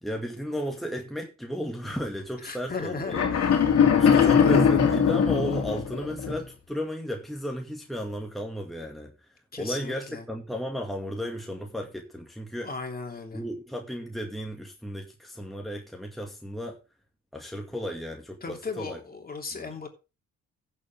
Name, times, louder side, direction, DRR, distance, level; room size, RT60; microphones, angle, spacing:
voice 1, 0.0-3.4 3.9-12.7 13.3-16.8 17.3-19.0 19.5-19.7, equal, ahead, 2.2 m, -34 dB
voice 2, 2.4-3.8 4.0-4.6 9.5-10.2 12.6-13.4 18.4-19.9, left 4 dB, 30° left, 3.1 m, -36 dB
sound 1, 3.1-6.4, left 7 dB, 55° left, 2.5 m, -21 dB
15.0 x 7.2 x 3.6 m
cardioid pair, 90°, 30 cm